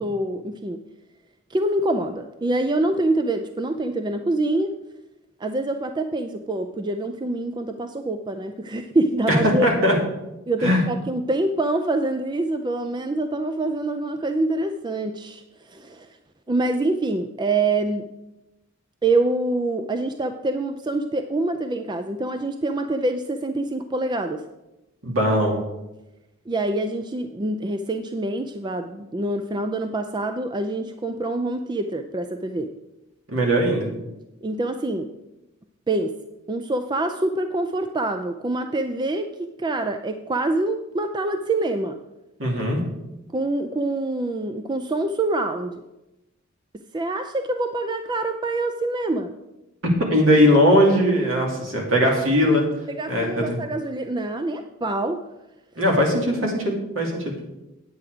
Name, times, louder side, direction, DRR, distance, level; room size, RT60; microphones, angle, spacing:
voice 1, 0.0-0.8 1.5-4.7 5.4-9.7 10.5-16.2 16.5-18.1 19.0-24.4 26.5-32.7 34.4-35.1 35.9-36.2 36.5-42.0 43.3-45.8 46.9-49.4 52.9-55.2, right 2 dB, 20° right, 7 dB, 0.4 m, -25 dB
voice 2, 9.6-10.0 10.6-10.8 25.0-25.6 33.3-33.9 42.4-42.8 50.1-52.6 53.1-53.6 55.8-57.3, equal, 65° right, -1 dB, 2.7 m, -19 dB
9.3 x 8.6 x 4.9 m, 0.96 s
head